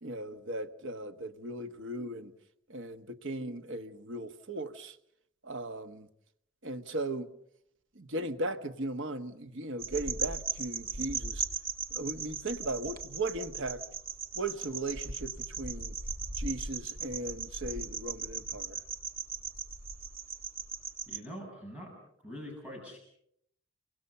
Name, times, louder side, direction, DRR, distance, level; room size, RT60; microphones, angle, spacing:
voice 1, 0.0-2.3 2.7-5.0 5.4-6.1 6.6-7.3 7.9-11.4 11.9-13.8 14.3-15.9 16.4-18.8, right 2 dB, 60° right, 1.3 m, -37 dB
sound 1, 9.8-21.2, right 5 dB, 45° right, 1.7 m, -38 dB
voice 2, 21.1-21.9 22.2-23.0, equal, 5° right, 7.2 m, -44 dB
29.0 x 24.5 x 5.6 m
head